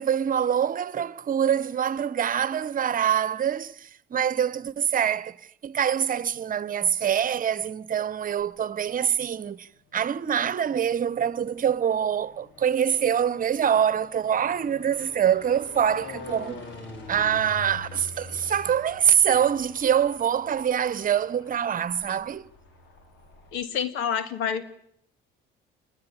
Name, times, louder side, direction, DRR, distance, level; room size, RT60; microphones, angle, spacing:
voice 1, 0.0-5.4 5.6-16.7 17.1-22.5, right 8 dB, 45° right, 1.2 m, -25 dB
sound 1, 8.1-8.8 9.6-23.6, left 3 dB, 70° left, 5.7 m, -45 dB
voice 2, 23.5-24.7, left 8 dB, 85° left, 2.5 m, -28 dB
27.0 x 21.5 x 9.9 m
supercardioid pair, 80°, 20 cm